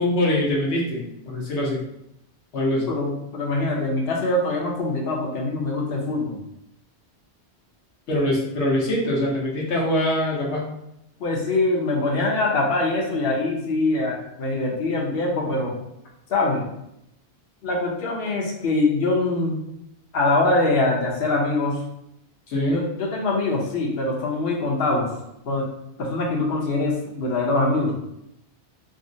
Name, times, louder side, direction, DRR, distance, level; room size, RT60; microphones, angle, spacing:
voice 1, 0.0-1.8 2.5-2.9 8.1-10.7 22.5-22.8, left 1 dB, 80° left, -3 dB, 1.2 m, -23 dB
voice 2, 2.9-6.4 11.2-15.8 16.3-16.7 17.6-19.6 20.1-21.8 22.7-25.1 25.5-25.7 26.0-27.9, left 2 dB, 65° left, -1 dB, 0.9 m, -23 dB
3.6 x 2.1 x 2.6 m, 0.82 s
omnidirectional pair, 1.1 m